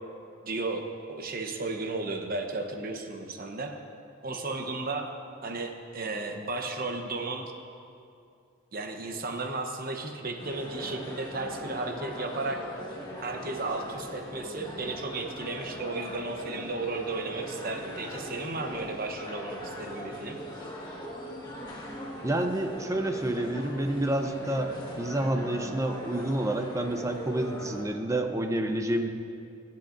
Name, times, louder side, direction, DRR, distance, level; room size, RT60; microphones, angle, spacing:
voice 1, 0.4-3.7 4.2-5.1 5.4-7.5 8.7-12.6 13.2-20.4, right 3 dB, 50° right, 3 dB, 0.9 m, -34 dB
sound 1, 10.4-27.8, equal, 20° left, 1.5 m, -40 dB
voice 2, 22.2-29.1, right 1 dB, 15° right, 5 dB, 0.6 m, -29 dB
21.5 x 8.5 x 2.6 m, 2.5 s
head